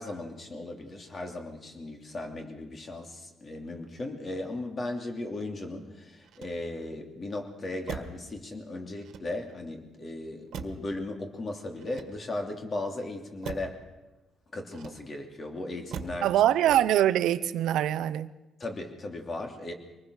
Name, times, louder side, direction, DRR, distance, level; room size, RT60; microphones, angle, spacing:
voice 1, 0.0-13.8 14.5-16.3 18.6-19.7, left 2 dB, 30° left, 4 dB, 2.9 m, -37 dB
Motor vehicle (road), 6.2-7.0 7.8-8.3 9.0-9.7 10.5-11.0 11.8-12.5 13.4-13.8 14.7-15.3 15.9-16.3 16.7-17.1, right 6 dB, 65° right, 1.8 m, -42 dB
voice 2, 16.2-18.3, right 12 dB, 90° right, 12 dB, 0.8 m, -23 dB
25.0 x 19.5 x 6.4 m, 1.1 s
cardioid pair, 150°, 0 cm